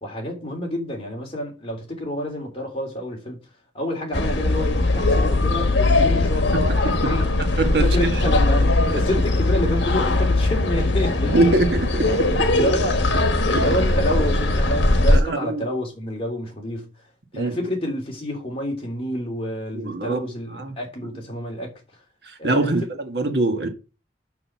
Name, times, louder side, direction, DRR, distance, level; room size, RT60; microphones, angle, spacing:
voice 1, 0.0-3.4 3.7-7.3 7.8-11.6 12.5-13.0 13.4-16.9 17.3-21.7 22.4-22.7, equal, 30° left, 2.9 m, -28 dB
sound 1, 4.1-15.2, left 2 dB, 70° left, 1.5 m, -20 dB
voice 2, 6.5-6.9 7.6-7.9 11.3-12.5 15.1-15.6 17.3-17.6 19.7-20.2 20.5-20.8 22.2-23.7, right 2 dB, 60° right, 1.5 m, -23 dB
6.3 x 6.0 x 7.2 m
head